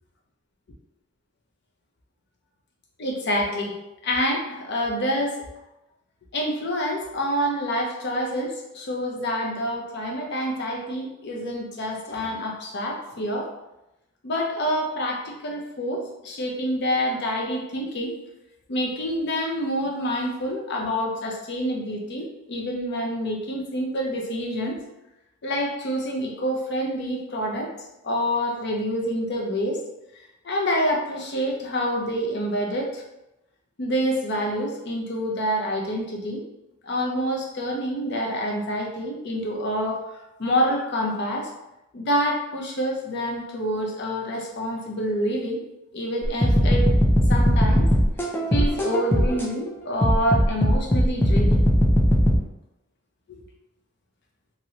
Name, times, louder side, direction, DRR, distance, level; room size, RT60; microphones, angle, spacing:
voice 1, 3.0-3.8 4.0-5.4 6.3-13.5 14.2-18.2 18.7-24.8 25.4-27.7 28.0-29.8 30.4-33.0 33.8-36.4 36.8-41.5 41.9-45.6 45.9-46.9 47.3-47.9 48.5-51.6, equal, 55° left, 0 dB, 0.6 m, -27 dB
sound 1, 46.2-49.5 50.0-52.4, equal, 10° left, 0.4 m, -19 dB
3.0 x 2.6 x 2.8 m, 0.94 s
head